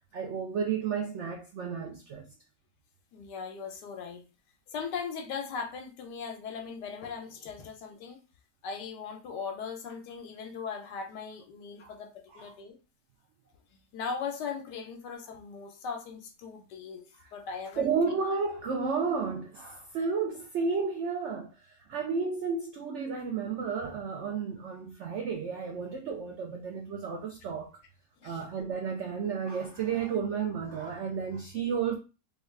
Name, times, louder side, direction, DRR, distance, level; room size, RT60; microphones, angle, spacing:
voice 1, 0.1-2.2 11.8-11.9 12.3-12.5 17.8-27.7 28.2-31.9, right 5 dB, 85° right, 0.6 m, -32 dB
voice 2, 3.1-4.2 4.7-8.2 8.6-12.8 13.9-17.0 17.3-17.9 28.2-28.5, left 5 dB, 90° left, 1.3 m, -39 dB
3.4 x 2.3 x 3.2 m
omnidirectional pair, 1.8 m